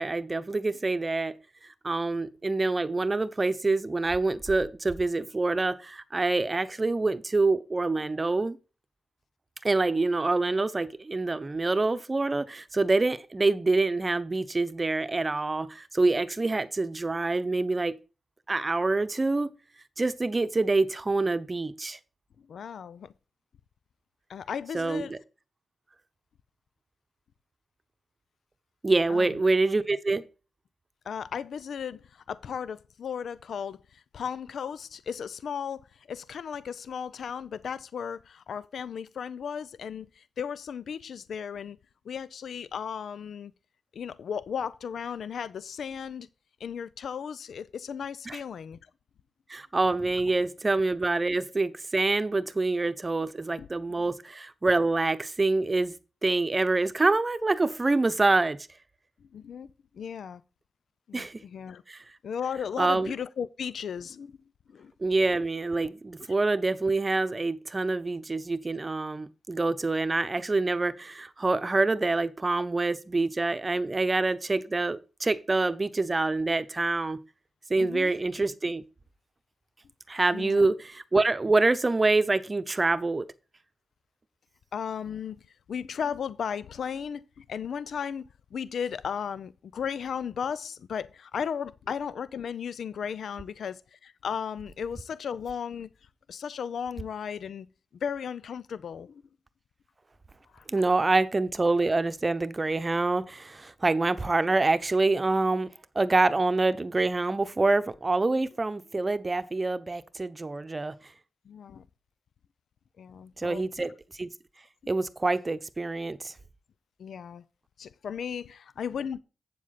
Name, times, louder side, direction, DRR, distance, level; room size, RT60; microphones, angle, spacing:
voice 1, 0.0-1.4 1.6-8.6 9.6-18.0 18.5-19.5 20.0-22.0 24.7-25.2 28.8-30.2 48.3-48.4 49.5-56.0 56.2-58.7 61.1-61.4 61.9-62.0 62.8-63.1 65.0-77.2 77.7-78.8 80.1-83.2 100.7-105.7 105.9-110.9 113.4-114.3 114.9-116.3, right 3 dB, 35° right, 0.8 m, -26 dB
voice 2, 22.5-23.1 24.3-25.1 29.1-29.4 31.1-41.8 42.1-43.5 43.9-46.3 46.6-48.8 53.6-53.7 59.3-59.7 59.9-60.4 61.1-61.8 62.2-64.3 64.7-64.9 77.8-78.1 80.3-80.7 84.7-85.4 85.7-95.9 96.3-97.7 98.0-99.2 100.5-100.6 108.3-108.4 111.5-111.8 113.0-113.6 117.0-117.4 117.8-119.2, left 7 dB, 75° left, 0.4 m, -35 dB
8.4 x 7.3 x 4.1 m
supercardioid pair, 40°, 0 cm